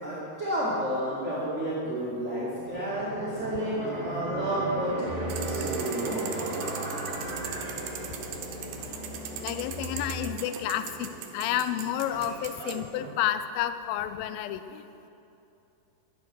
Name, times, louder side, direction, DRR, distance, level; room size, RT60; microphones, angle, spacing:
voice 1, 0.0-5.0 5.5-6.4, equal, 25° right, -10 dB, 1.7 m, -31 dB
sound 1, 2.5-13.1, right 2 dB, 55° right, 0.5 m, -38 dB
sound 2, 5.1-10.3, equal, 55° left, 3.4 m, -40 dB
sound 3, 5.3-12.8, right 8 dB, 75° right, 2.4 m, -40 dB
voice 2, 9.4-14.8, left 11 dB, 90° left, 11 dB, 2.1 m, -30 dB
12.0 x 11.0 x 6.2 m, 2.8 s
omnidirectional pair, 4.7 m